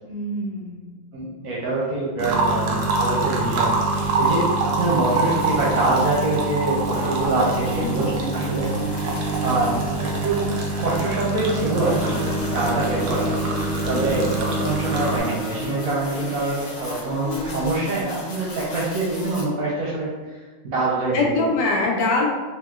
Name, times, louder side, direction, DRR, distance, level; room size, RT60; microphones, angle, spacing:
voice 1, 0.0-1.0 7.8-8.1 8.4-8.6 13.9-14.7 21.1-22.3, left 2 dB, 80° left, -2 dB, 1.3 m, -25 dB
voice 2, 1.1-3.9 4.2-8.7 9.4-10.5 10.8-13.3 13.9-20.4 20.6-21.4, right 2 dB, 60° right, -5 dB, 1.0 m, -25 dB
sound 1, 2.2-15.2, right 3 dB, 85° right, 0.6 m, -25 dB
sound 2, 4.0-19.4, right 1 dB, 60° left, 1.2 m, -32 dB
3.6 x 2.8 x 2.3 m, 1.3 s
omnidirectional pair, 2.0 m